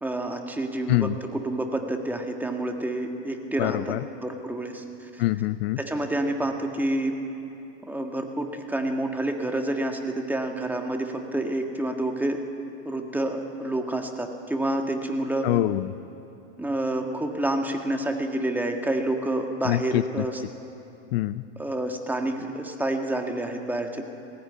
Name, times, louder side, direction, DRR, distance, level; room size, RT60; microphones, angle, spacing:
voice 1, 0.0-3.9 4.2-5.2 5.8-7.1 7.8-12.4 12.8-15.5 16.6-20.4 21.6-24.0, right 1 dB, 5° right, 3 dB, 1.7 m, -28 dB
voice 2, 0.9-1.2 3.6-4.0 5.2-5.8 15.4-15.9 19.6-20.3 21.1-21.4, left 16 dB, 60° left, 16 dB, 0.6 m, -25 dB
18.5 x 16.0 x 9.4 m, 2.8 s
hypercardioid pair, 115°, 34 cm